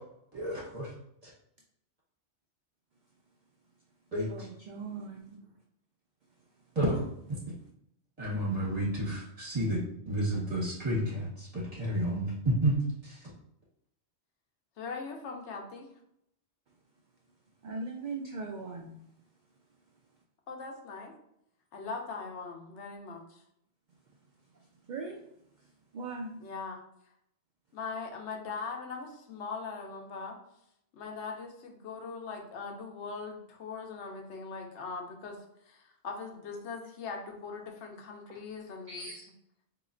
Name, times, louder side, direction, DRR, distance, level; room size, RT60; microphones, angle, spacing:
voice 1, 0.3-0.9 1.2-1.3 4.1-4.3 6.8-7.0 8.2-9.8 10.1-13.2, right 1 dB, 35° right, -7 dB, 1.6 m, -30 dB
voice 2, 4.3-5.5 6.3-6.5 17.6-19.0 24.4-25.2 25.6-26.4 38.9-39.3, right 3 dB, 60° right, 1 dB, 0.5 m, -41 dB
voice 3, 14.8-15.9 20.5-21.1 21.7-23.4 26.4-26.8 27.7-30.4 30.9-35.4 35.7-39.1, left 4 dB, 80° left, 2 dB, 1.0 m, -40 dB
4.0 x 2.9 x 2.5 m, 0.75 s
omnidirectional pair, 1.2 m